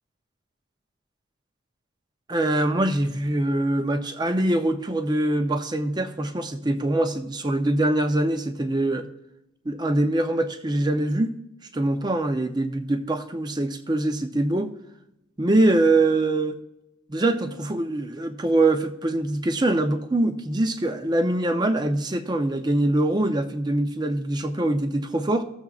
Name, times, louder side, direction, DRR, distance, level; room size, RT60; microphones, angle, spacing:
voice 1, 2.3-9.1 9.7-11.3 11.7-14.7 15.4-16.6 17.1-25.4, right 1 dB, 20° right, 8 dB, 0.5 m, -23 dB
15.5 x 7.1 x 2.4 m, 0.90 s
head